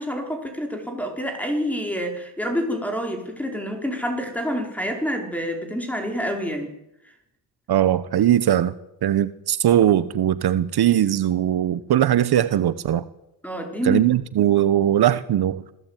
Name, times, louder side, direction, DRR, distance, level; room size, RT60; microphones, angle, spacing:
voice 1, 0.0-6.7 13.4-14.0, equal, 5° left, 5.1 m, -27 dB
voice 2, 7.7-8.7 9.0-13.0 13.8-15.7, right 11 dB, 60° right, 1.1 m, -20 dB
26.5 x 16.5 x 9.2 m
cardioid pair, 135°, 43 cm